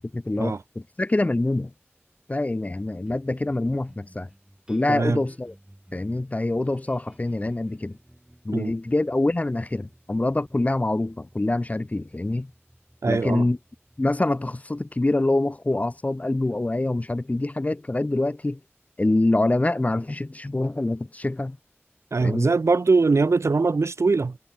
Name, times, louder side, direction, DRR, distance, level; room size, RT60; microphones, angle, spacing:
voice 1, 0.1-1.7 2.3-4.3 4.7-5.5 5.9-8.0 8.4-12.5 13.1-13.6 14.0-18.6 19.0-21.6 22.2-22.5, left 2 dB, 30° left, 0.5 m, -25 dB
sound 1, 3.1-17.7, right 1 dB, 15° right, 5.7 m, -56 dB
voice 2, 4.9-5.2 8.5-8.7 13.0-13.5 22.1-24.4, right 4 dB, 80° right, 0.7 m, -22 dB
wide cardioid pair, 65°, 5 cm